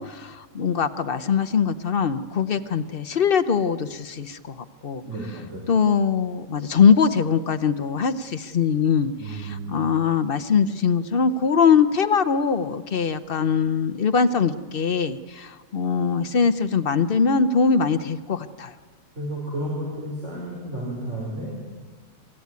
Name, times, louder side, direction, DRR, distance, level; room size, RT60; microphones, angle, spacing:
voice 1, 0.0-5.0 5.7-18.7, left 6 dB, 50° left, 10 dB, 0.7 m, -22 dB
voice 2, 5.0-5.6 9.2-9.8 19.1-21.6, right 1 dB, 40° right, -5 dB, 5.1 m, -32 dB
25.5 x 14.5 x 9.4 m, 1.4 s
omnidirectional pair, 1.9 m